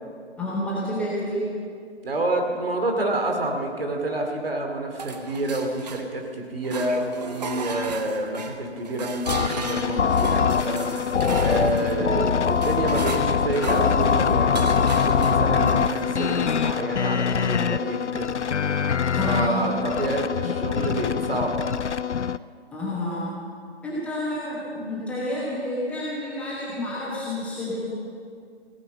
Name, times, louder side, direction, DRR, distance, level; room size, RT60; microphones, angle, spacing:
voice 1, 0.4-1.4 19.2-19.7 22.7-23.3 23.8-27.9, left 1 dB, 5° left, -7 dB, 1.0 m, -29 dB
voice 2, 2.0-10.9 11.3-18.3 19.1-21.7, right 2 dB, 55° right, 3 dB, 2.6 m, -28 dB
sound 1, 5.0-6.3 6.6-16.1, right 4 dB, 35° right, 1.0 m, -37 dB
sound 2, 9.3-22.4, left 7 dB, 90° left, 0.5 m, -23 dB
17.0 x 9.2 x 7.8 m, 2.2 s
figure-of-eight pair, 145°, 34 cm